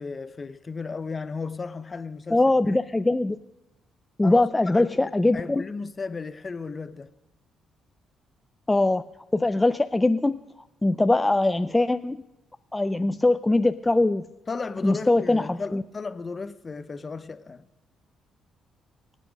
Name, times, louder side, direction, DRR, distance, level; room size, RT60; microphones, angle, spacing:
voice 1, 0.0-2.8 4.2-7.1 14.5-17.7, left 4 dB, 35° left, 0.8 m, -35 dB
voice 2, 2.3-3.4 4.2-5.7 8.7-9.0 9.3-10.4 10.8-12.2 12.7-14.2 14.8-15.8, left 2 dB, 15° left, 0.4 m, -22 dB
23.5 x 8.4 x 5.2 m
cardioid pair, 90°, 0 cm